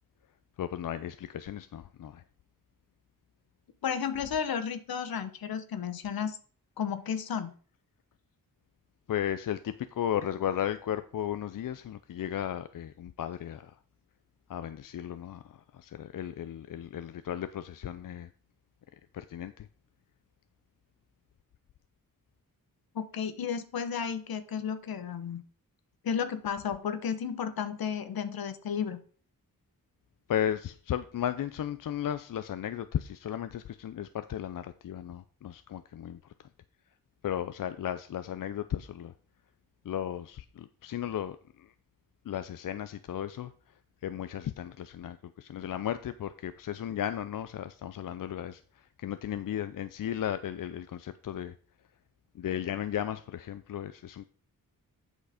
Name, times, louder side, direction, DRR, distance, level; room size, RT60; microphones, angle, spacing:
voice 1, 0.6-2.2 9.1-13.7 14.5-18.3 19.1-19.7 30.3-36.2 37.2-39.1 39.8-41.7 42.3-43.5 44.0-48.6 49.0-51.5 52.4-54.2, left 10 dB, 65° left, 0.5 m, -35 dB
voice 2, 3.8-6.4 6.8-7.5 22.9-25.4 26.0-29.0, left 7 dB, 80° left, 1.0 m, -33 dB
8.1 x 6.4 x 5.0 m
cardioid pair, 75°, 35 cm